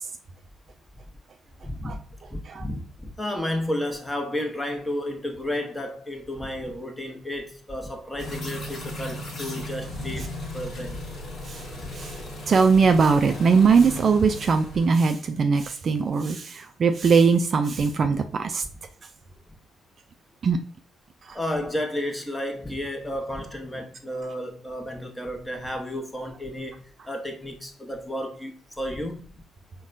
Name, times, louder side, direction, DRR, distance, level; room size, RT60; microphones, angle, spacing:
voice 1, 1.6-2.0 2.3-11.0 11.8-11.9 17.7-17.8 21.3-29.3, left 1 dB, 10° left, 0.9 m, -32 dB
sound 1, 8.2-14.9, left 1 dB, 50° left, 1.3 m, -36 dB
voice 2, 12.5-18.6 20.4-20.6 21.3-21.4, right 5 dB, 45° right, 0.3 m, -20 dB
4.1 x 2.2 x 2.5 m
hypercardioid pair, 45°, 0 cm